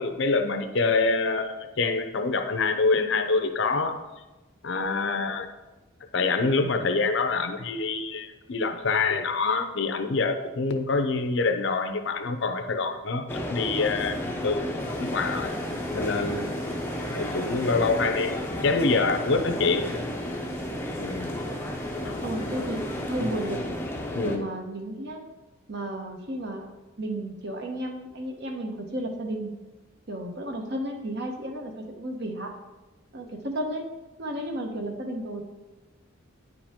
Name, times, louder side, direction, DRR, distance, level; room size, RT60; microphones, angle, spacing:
voice 1, 0.0-4.0 4.6-5.5 6.1-15.5 15.9-16.5 17.1-19.9 21.0-21.3 22.0-22.2 24.1-24.5, left 3 dB, 55° left, 7 dB, 0.6 m, -26 dB
sound 1, 13.3-24.4, left 1 dB, 10° left, 0.6 m, -32 dB
sound 2, 14.8-23.6, equal, 30° right, 2.3 m, -46 dB
voice 2, 22.2-23.6 24.2-25.3 25.7-26.7 27.0-29.5 30.1-32.5 33.1-33.9 34.2-35.4, right 1 dB, 50° right, 3 dB, 1.0 m, -33 dB
9.7 x 5.0 x 3.6 m, 1.1 s
head